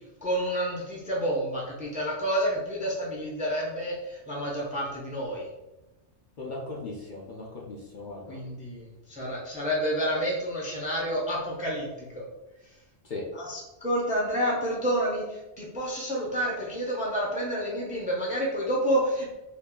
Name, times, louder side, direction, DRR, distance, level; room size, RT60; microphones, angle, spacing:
voice 1, 0.2-5.5 8.3-12.2 13.3-19.3, equal, 10° right, -3 dB, 0.5 m, -29 dB
voice 2, 6.4-8.4 13.0-13.2, left 2 dB, 50° left, -3 dB, 0.7 m, -38 dB
2.9 x 2.5 x 3.7 m, 1.0 s
omnidirectional pair, 1.2 m